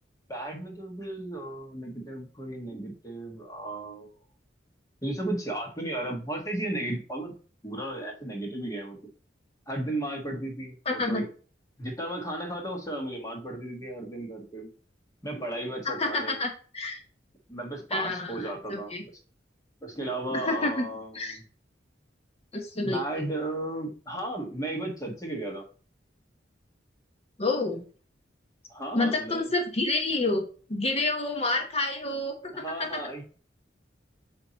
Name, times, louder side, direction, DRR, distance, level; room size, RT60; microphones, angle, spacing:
voice 1, 0.3-4.1 5.0-7.3 7.6-9.0 9.7-11.2 11.8-14.7 15.2-16.4 17.5-18.9 19.8-21.4 22.8-25.6 28.7-29.4 32.5-33.2, right 1 dB, 20° left, 1 dB, 1.5 m, -34 dB
voice 2, 10.9-11.2 15.8-16.5 16.7-17.0 17.9-19.0 20.3-20.8 21.1-21.4 22.5-23.0 27.4-27.8 28.9-30.4 30.7-33.0, left 2 dB, 35° left, 3 dB, 1.0 m, -28 dB
8.1 x 2.9 x 4.0 m, 0.39 s
head